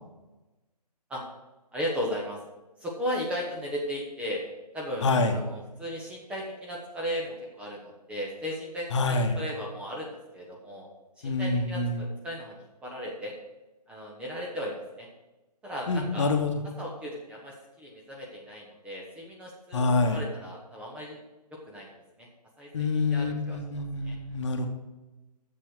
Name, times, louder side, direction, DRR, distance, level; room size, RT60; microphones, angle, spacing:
voice 1, 1.7-2.4 2.8-4.4 4.7-10.9 11.2-13.3 13.9-15.1 15.6-16.3 16.8-21.2 21.7-21.9 22.2-22.3 22.6-23.6 24.0-24.1, equal, 5° right, -3 dB, 0.8 m, -36 dB
voice 2, 5.0-5.4 8.9-9.4 11.2-12.0 15.9-16.5 19.7-20.2 22.7-24.7, left 3 dB, 45° left, 6 dB, 1.2 m, -26 dB
7.5 x 6.8 x 6.2 m, 1.1 s
figure-of-eight pair, 150°, 21 cm